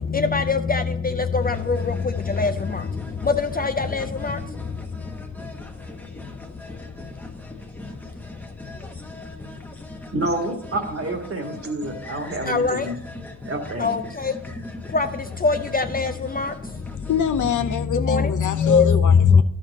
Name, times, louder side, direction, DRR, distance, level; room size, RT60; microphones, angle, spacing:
voice 1, 0.3-0.8 1.4-1.8 2.4-2.5 3.6-4.0 12.5-12.8 13.8-14.0 14.9-15.1 15.4-16.1 16.4-16.5 18.1-18.2 18.6-18.8, left 4 dB, 30° left, 0.5 m, -21 dB
sound 1, 1.4-17.6, left 1 dB, 5° left, 1.0 m, -40 dB
voice 2, 10.1-13.0 13.4-14.0, right 2 dB, 45° right, 1.8 m, -28 dB
voice 3, 17.1-19.4, left 8 dB, 65° left, 0.7 m, -26 dB
11.0 x 6.5 x 4.1 m
cardioid pair, 80°, 33 cm